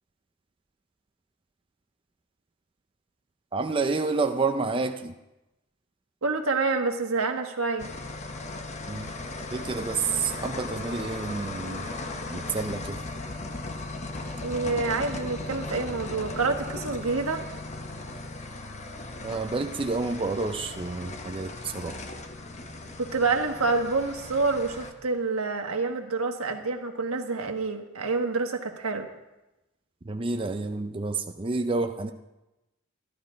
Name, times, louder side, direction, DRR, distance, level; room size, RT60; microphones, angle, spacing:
voice 1, 3.5-5.2 8.9-9.1 9.5-11.9 12.3-13.0 19.2-21.9 30.0-32.1, right 3 dB, 25° right, 6 dB, 0.5 m, -29 dB
voice 2, 6.2-7.9 14.4-17.4 23.0-29.1, right 3 dB, 85° right, 4 dB, 1.5 m, -27 dB
sound 1, 7.8-24.9, left 2 dB, 35° left, 1.0 m, -37 dB
14.0 x 12.0 x 5.1 m, 1.0 s
head